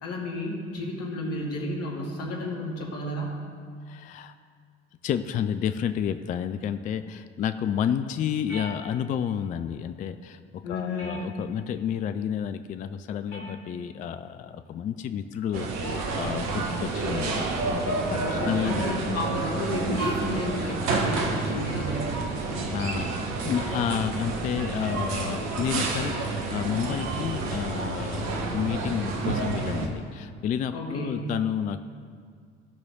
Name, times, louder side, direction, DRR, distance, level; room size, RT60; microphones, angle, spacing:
voice 1, 0.0-3.3 10.6-11.2 18.2-22.2 30.7-31.4, left 1 dB, 45° left, -2 dB, 2.1 m, -32 dB
voice 2, 3.9-4.3 5.0-10.4 10.7-18.9 22.7-31.8, left 8 dB, 25° left, 11 dB, 0.3 m, -30 dB
sound 1, 8.5-9.3 11.0-11.8 13.3-14.0 15.8-16.3, left 2 dB, 75° left, 2.1 m, -42 dB
sound 2, 15.5-29.9, right 3 dB, 50° right, 1.3 m, -29 dB
15.5 x 5.9 x 3.7 m, 2.1 s
figure-of-eight pair, 60°, 35 cm